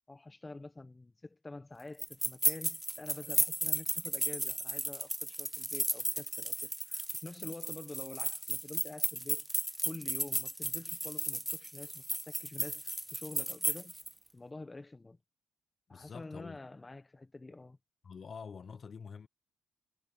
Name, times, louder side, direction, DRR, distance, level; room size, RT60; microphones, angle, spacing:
voice 1, 0.1-9.4 9.8-13.9 14.3-15.2 15.9-17.8, left 2 dB, 20° left, 1.3 m, -47 dB
sound 1, 2.0-14.1, right 1 dB, 5° right, 0.3 m, -34 dB
voice 2, 15.9-16.6 18.0-19.3, left 6 dB, 45° left, 0.9 m, -46 dB
cardioid pair, 90°, 0 cm